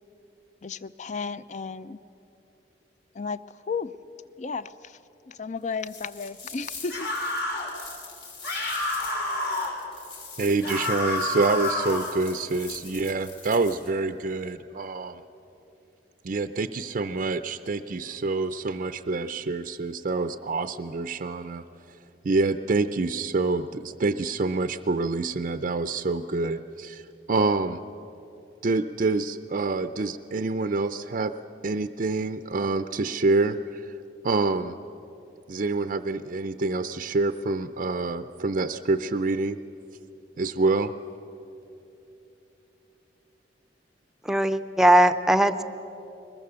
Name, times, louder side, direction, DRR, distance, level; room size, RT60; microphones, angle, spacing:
voice 1, 0.6-2.0 3.2-3.4 3.7-3.9 4.4-4.7 5.4-7.1, left 4 dB, 45° left, 15 dB, 0.5 m, -33 dB
sound 1, 5.8-13.9, left 4 dB, 85° left, 3.1 m, -44 dB
sound 2, 6.9-7.7 8.4-9.7 10.6-12.1, left 1 dB, 65° left, 4.1 m, -29 dB
voice 2, 10.4-15.2 16.2-21.6 22.2-27.8 28.6-31.3 31.6-33.9 34.2-34.8 35.5-39.6 40.4-40.9, right 3 dB, 50° right, 9 dB, 0.5 m, -27 dB
voice 3, 44.3-45.6, right 1 dB, 5° right, 11 dB, 0.6 m, -19 dB
21.5 x 21.0 x 6.8 m, 3.0 s
head